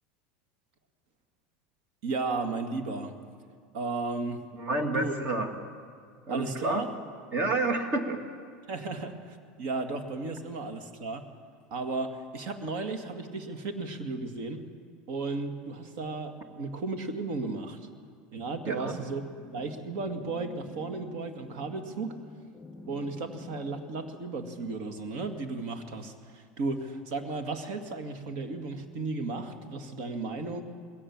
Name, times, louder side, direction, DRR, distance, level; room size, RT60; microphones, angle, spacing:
voice 1, 2.0-3.1 3.7-4.4 4.9-5.1 6.3-6.9 8.7-11.3 11.7-14.6 15.1-17.8 18.3-19.2 19.5-22.2 22.9-30.6, right 3 dB, 60° right, 5 dB, 2.2 m, -34 dB
voice 2, 4.5-5.5 6.3-6.9 7.3-8.2 18.7-19.0, right 2 dB, 40° right, 5 dB, 2.4 m, -29 dB
sound 1, 18.6-24.1, left 2 dB, 10° left, 5.3 m, -48 dB
21.0 x 17.0 x 7.4 m, 2.1 s
supercardioid pair, 135°, 5 cm